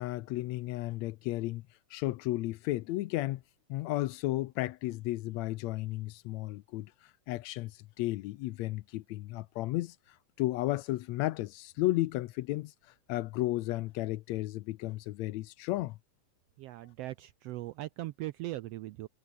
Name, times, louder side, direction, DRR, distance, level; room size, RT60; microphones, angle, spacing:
voice 1, 0.0-1.6 1.9-3.4 3.7-16.0, left 17 dB, 80° left, 1.8 m, -34 dB
voice 2, 16.6-19.1, right 16 dB, 80° right, 1.4 m, -39 dB
omnidirectional pair, 3.4 m